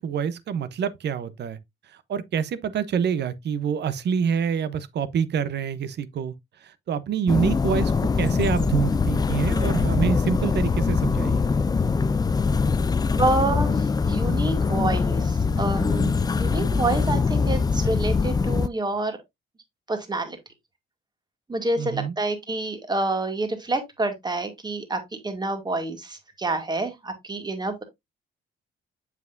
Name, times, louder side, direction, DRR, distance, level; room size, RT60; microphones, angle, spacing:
voice 1, 0.0-1.6 2.1-6.3 6.6-11.4 21.8-22.1, right 7 dB, 60° right, 0.8 m, -26 dB
sound 1, 7.3-18.7, left 4 dB, 20° left, 0.3 m, -23 dB
voice 2, 13.1-19.2 19.9-20.4 21.5-27.8, right 2 dB, 20° right, 1.8 m, -28 dB
7.3 x 5.9 x 2.5 m
cardioid pair, 90°, 20 cm